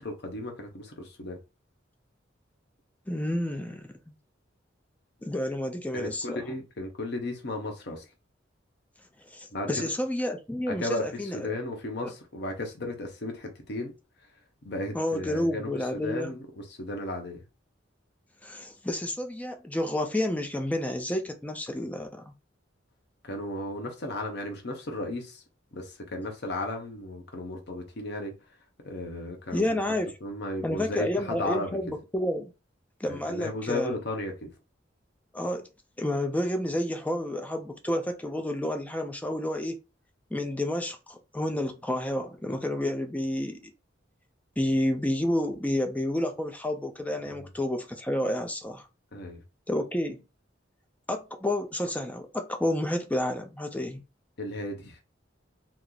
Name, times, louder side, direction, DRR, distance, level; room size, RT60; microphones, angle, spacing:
voice 1, 0.0-1.4 5.9-8.1 9.5-9.9 10.7-14.3 14.6-17.4 23.2-25.4 25.7-28.3 28.8-29.8 30.2-31.8 33.1-34.5 47.2-47.5 49.1-49.4 54.4-55.0, left 2 dB, 60° left, 0.9 m, -35 dB
voice 2, 3.1-3.9 5.2-6.4 9.3-11.5 12.0-12.1 14.9-16.3 18.4-22.3 29.5-30.1 30.6-32.5 33.0-33.9 35.3-35.7 36.0-39.8 40.3-43.6 44.6-48.9 49.7-50.2 51.1-54.0, left 1 dB, 10° left, 0.4 m, -30 dB
2.9 x 2.0 x 3.8 m
head